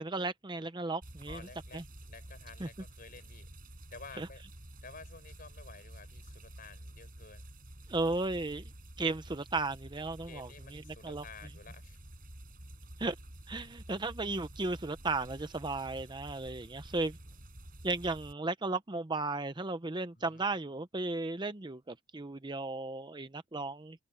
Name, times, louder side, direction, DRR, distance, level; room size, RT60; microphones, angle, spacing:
voice 1, 0.0-1.4 1.7-1.8 2.6-2.7 4.2-4.3 7.9-8.6 9.0-11.2 13.0-13.2 13.5-17.2 17.8-24.0, right 3 dB, 25° right, 0.7 m, -35 dB
sound 1, 1.0-18.3, right 1 dB, 45° right, 4.9 m, -50 dB
voice 2, 1.3-3.5 3.9-4.4 4.8-7.5 10.3-12.0 20.1-20.5, left 4 dB, 45° left, 6.5 m, -52 dB
head